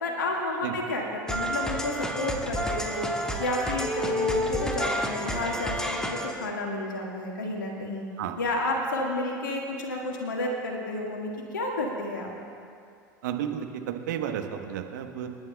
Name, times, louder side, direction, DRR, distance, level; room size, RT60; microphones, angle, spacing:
voice 1, 0.0-3.1 3.4-8.0 8.4-12.3, left 2 dB, 80° left, -1 dB, 1.8 m, -31 dB
sound 1, 1.3-6.5, equal, 5° left, 1.6 m, -30 dB
voice 2, 13.2-15.3, right 9 dB, 70° right, 5 dB, 1.2 m, -32 dB
28.0 x 11.0 x 2.3 m, 2.3 s
hypercardioid pair, 80°, 10 cm